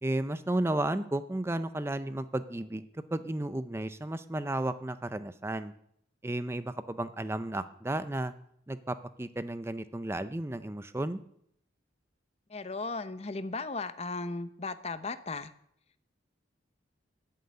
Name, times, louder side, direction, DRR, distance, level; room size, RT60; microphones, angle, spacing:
voice 1, 0.0-5.7 6.2-8.3 8.7-11.2, right 1 dB, 15° right, 12 dB, 0.5 m, -33 dB
voice 2, 12.5-15.5, left 3 dB, 35° left, 12 dB, 0.8 m, -36 dB
14.0 x 7.8 x 9.5 m, 0.71 s
head